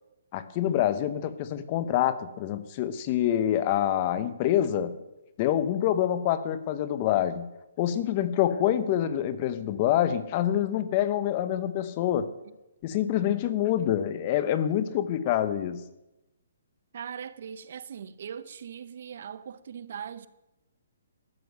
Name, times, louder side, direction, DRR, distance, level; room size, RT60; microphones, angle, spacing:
voice 1, 0.3-5.0 5.4-7.5 7.8-12.3 12.8-15.8, left 11 dB, 25° left, 0.7 m, -26 dB
voice 2, 16.9-20.3, right 8 dB, 50° right, 0.8 m, -40 dB
13.0 x 7.4 x 9.3 m
hypercardioid pair, 170°, 0 cm